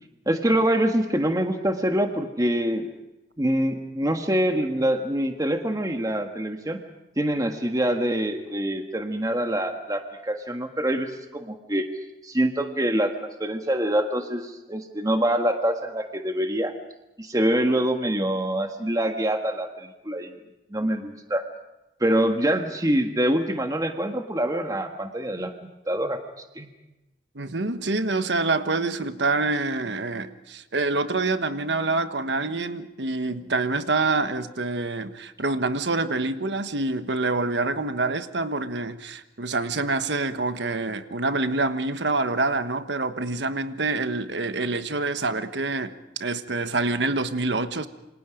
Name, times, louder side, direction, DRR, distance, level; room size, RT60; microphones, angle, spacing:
voice 1, 0.2-2.9 3.4-6.8 7.2-11.9 12.2-16.7 17.2-20.3 20.7-21.4 22.0-25.5 25.9-26.2 26.5-26.7, right 1 dB, 20° right, 1.6 m, -25 dB
voice 2, 27.3-47.9, right 3 dB, 85° right, 1.3 m, -26 dB
28.0 x 26.0 x 5.1 m
head